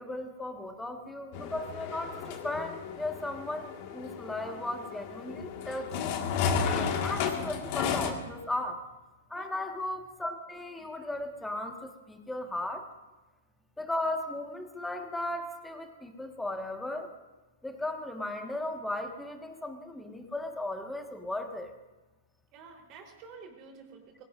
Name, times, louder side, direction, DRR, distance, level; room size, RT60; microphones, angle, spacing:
voice 1, 0.0-5.9 6.6-8.8 9.3-12.8 13.8-17.1 17.6-21.7, left 1 dB, 5° left, 4 dB, 1.7 m, -36 dB
sound 1, 1.3-8.1, left 6 dB, 50° left, 1.9 m, -33 dB
voice 2, 22.5-24.2, right 5 dB, 40° right, 2 dB, 4.0 m, -50 dB
23.5 x 17.5 x 2.7 m, 1.1 s
hypercardioid pair, 120°, 0 cm